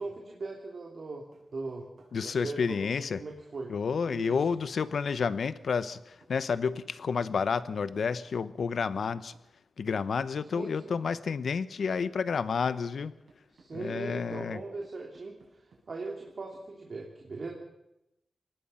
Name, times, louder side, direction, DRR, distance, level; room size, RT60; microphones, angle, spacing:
voice 1, 0.0-1.9 2.2-2.9 3.2-3.7 4.1-4.4 10.5-10.9 13.5-17.5, right 3 dB, 55° right, 0 dB, 3.1 m, -39 dB
sound 1, 1.3-9.5 9.9-10.1 10.9-11.0 11.9-12.0 12.3-16.7, right 3 dB, 80° right, 7.4 m, -62 dB
voice 2, 2.1-3.2 3.7-9.3 9.8-13.1 13.7-14.6, left 5 dB, 75° left, 14 dB, 1.0 m, -30 dB
23.5 x 19.5 x 5.7 m, 0.87 s
wide cardioid pair, 105°, 0 cm